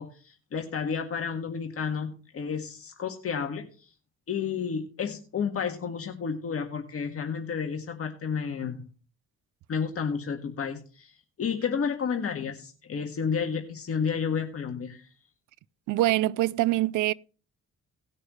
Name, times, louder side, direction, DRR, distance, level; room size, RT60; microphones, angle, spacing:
voice 1, 0.0-3.7 4.3-8.8 9.7-11.1 11.4-15.1, left 6 dB, 50° left, 1.8 m, -31 dB
voice 2, 15.9-17.1, right 16 dB, 85° right, 0.5 m, -24 dB
18.5 x 6.5 x 3.1 m
cardioid pair, 90°, 30 cm